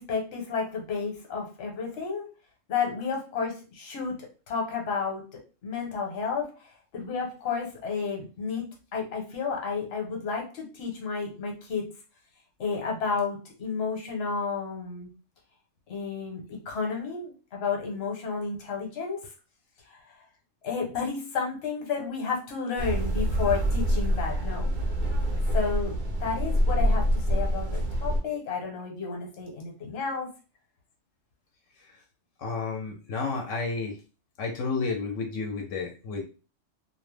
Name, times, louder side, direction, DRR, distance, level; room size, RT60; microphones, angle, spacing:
voice 1, 0.0-2.3 2.7-4.2 4.5-5.2 5.6-8.7 8.9-11.9 12.6-15.1 15.9-19.2 19.9-20.1 20.6-24.7 25.5-30.3, left 5 dB, 60° left, 1 dB, 1.0 m, -31 dB
sound 1, 22.8-28.2, equal, 55° right, 0.6 m, -26 dB
voice 2, 32.4-34.0 34.4-36.2, left 4 dB, 85° left, 2 dB, 0.9 m, -31 dB
2.4 x 2.0 x 3.1 m, 0.34 s
omnidirectional pair, 1.3 m